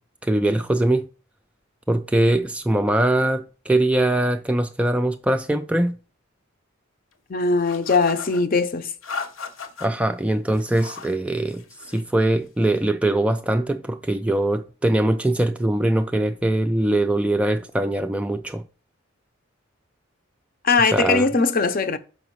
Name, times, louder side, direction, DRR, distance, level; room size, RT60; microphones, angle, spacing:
voice 1, 0.2-1.1 1.9-6.0 9.8-11.6 11.9-18.6 20.9-21.2, right 1 dB, 5° right, 0.3 m, -22 dB
voice 2, 7.3-8.9 20.6-22.0, left 4 dB, 45° left, 0.6 m, -20 dB
sound 1, 7.6-8.4 9.0-9.9 10.5-11.2 11.5-12.1, left 5 dB, 80° left, 0.9 m, -36 dB
6.3 x 4.8 x 4.6 m
head